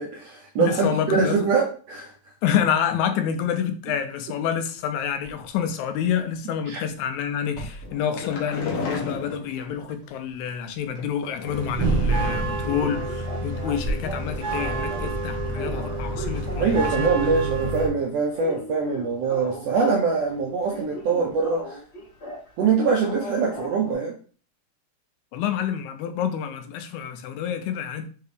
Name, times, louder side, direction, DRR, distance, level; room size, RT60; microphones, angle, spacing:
voice 1, 0.0-2.1 6.7-6.8 16.6-21.8 22.6-24.1, right 5 dB, 80° right, 1.4 m, -23 dB
voice 2, 0.6-1.4 2.4-16.7 17.0-17.1 25.3-28.1, left 8 dB, 80° left, 1.9 m, -28 dB
sound 1, 5.2-5.4 7.5-7.9 8.4-10.5 10.8-11.0 11.3-11.4 11.7-11.8 12.1-12.2 12.6-15.2 15.5-17.3 17.6-17.9 18.2-20.3 20.6-22.5 23.0-23.9, equal, 40° left, 0.9 m, -38 dB
Fuelwood Tipped, 7.8-9.9 10.9-11.8 12.2-12.7 13.0-13.1 13.4-13.5, left 4 dB, 65° left, 1.8 m, -33 dB
sound 2, 11.5-17.9, right 2 dB, 65° right, 1.3 m, -27 dB
5.5 x 2.8 x 3.3 m
omnidirectional pair, 3.5 m